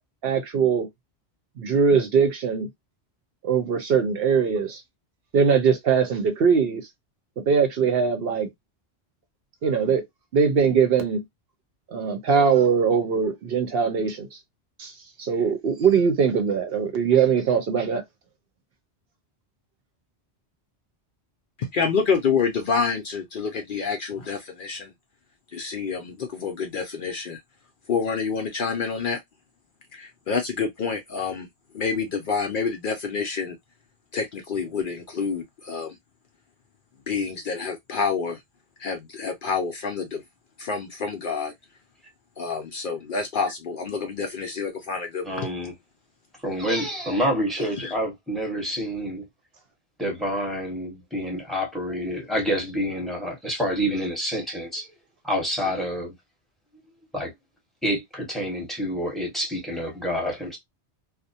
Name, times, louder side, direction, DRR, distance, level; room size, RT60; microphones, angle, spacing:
voice 1, 0.2-0.9 1.6-2.7 3.4-4.8 5.3-6.9 7.5-8.5 9.6-10.0 10.3-11.2 11.9-14.3 14.8-14.9 15.2-18.0, right 6 dB, 65° right, 0.8 m, -21 dB
voice 2, 21.6-24.9 25.5-27.4 27.9-29.2 29.9-31.5 31.7-33.6 34.1-36.0 37.1-38.4 38.8-40.2 40.6-41.5 42.4-45.5 47.6-47.9, left 5 dB, 60° left, 0.6 m, -28 dB
voice 3, 45.2-45.7 46.4-49.2 50.0-54.9 55.2-56.1 57.1-57.3 57.8-60.6, equal, ahead, 0.9 m, -28 dB
2.4 x 2.1 x 2.6 m
omnidirectional pair, 1.1 m